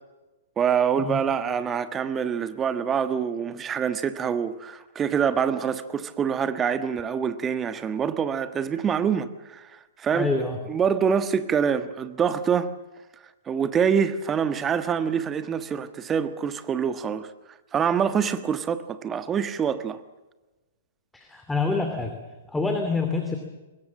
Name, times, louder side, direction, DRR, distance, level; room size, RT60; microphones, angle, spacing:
voice 1, 0.6-12.7 13.5-17.3 17.7-20.0, right 7 dB, 20° right, 1.3 m, -25 dB
voice 2, 10.1-10.6 21.1-22.1 22.5-23.4, left 3 dB, 5° left, 2.7 m, -26 dB
23.0 x 21.0 x 7.6 m
figure-of-eight pair, 115°, 0 cm